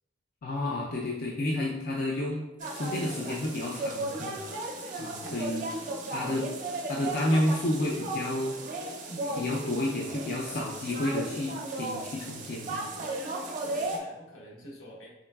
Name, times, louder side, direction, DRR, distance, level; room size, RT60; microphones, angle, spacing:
voice 1, 0.4-2.4 2.7-4.4 5.0-5.6 6.1-6.5 6.9-8.5 9.4-12.9, left 1 dB, 50° left, -3 dB, 0.4 m, -30 dB
sound 1, 2.6-14.0, right 2 dB, 40° right, 0.4 m, -35 dB
voice 2, 5.2-5.6 8.0-8.1 9.1-9.4 13.6-15.1, equal, 80° left, -2 dB, 0.8 m, -46 dB
3.8 x 3.2 x 2.2 m, 1.0 s
head